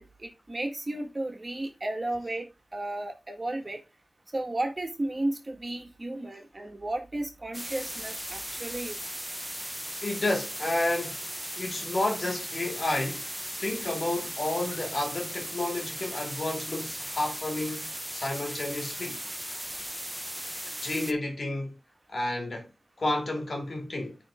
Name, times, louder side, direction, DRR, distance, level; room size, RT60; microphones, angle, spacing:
voice 1, 0.0-2.5 2.7-3.8 4.3-9.0, right 1 dB, 35° right, 2.0 m, -33 dB
sound 1, 7.5-21.1, equal, 5° right, 0.9 m, -37 dB
voice 2, 10.0-11.3 11.5-13.2 13.6-19.2 20.7-21.8 22.1-22.7 23.0-24.2, left 2 dB, 65° left, 2.6 m, -31 dB
9.5 x 4.5 x 3.7 m
wide cardioid pair, 60°, 0 cm